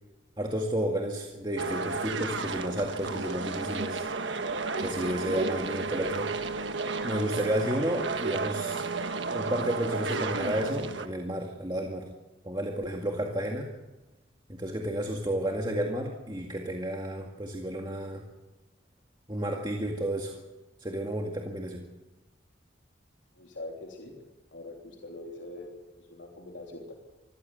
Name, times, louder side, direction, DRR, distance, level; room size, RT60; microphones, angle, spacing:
voice 1, 0.4-4.1 4.8-6.3 7.0-8.8 9.3-12.1 12.4-13.7 14.5-18.2 19.3-20.4 20.8-21.9, right 1 dB, 25° right, 0 dB, 2.1 m, -32 dB
sound 1, 1.6-11.1, right 3 dB, 85° right, 1.4 m, -32 dB
voice 2, 23.3-24.2 24.5-26.9, left 2 dB, 80° left, -1 dB, 3.4 m, -43 dB
25.0 x 15.0 x 8.0 m, 1.1 s
head